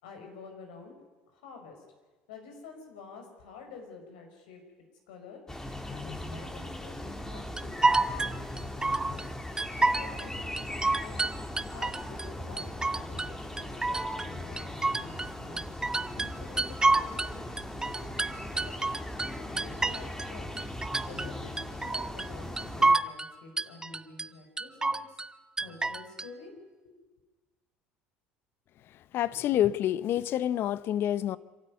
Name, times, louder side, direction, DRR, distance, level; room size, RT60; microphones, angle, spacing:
voice 1, 0.0-0.9 1.3-1.8 2.3-4.6 5.1-5.4 5.9-15.6 16.1-18.8 19.3-20.6 21.0-25.2 25.6-26.9, left 4 dB, 85° left, 5.6 m, -49 dB
atmosphere - exteriour park, 5.5-22.9, left 1 dB, 10° left, 2.3 m, -39 dB
kaivo bleepseek high, 7.6-9.2 9.6-10.3 10.6-12.3 12.6-13.3 13.6-15.3 15.6-17.3 17.6-20.3 20.6-21.3 21.6-22.3 22.6-23.3 23.6-24.3 24.6-25.3 25.6-26.3, right 3 dB, 15° right, 0.9 m, -28 dB
voice 2, 28.8-31.4, left 11 dB, 55° left, 0.8 m, -28 dB
27.0 x 12.5 x 9.6 m
hypercardioid pair, 80°, 5 cm